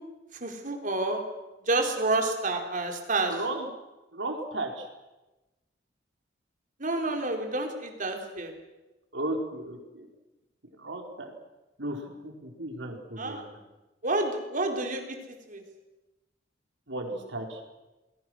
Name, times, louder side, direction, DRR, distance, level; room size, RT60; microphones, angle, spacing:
voice 1, 0.4-1.2 1.7-3.3 6.8-8.5 13.2-13.5 14.0-15.2 15.5-15.6, right 2 dB, 45° right, 3 dB, 4.2 m, -29 dB
voice 2, 3.3-3.7 4.1-4.9 9.1-10.1 10.8-11.3 11.8-13.6 16.9-17.6, right 1 dB, 85° right, 2 dB, 4.6 m, -35 dB
29.5 x 21.5 x 6.5 m, 1.0 s
head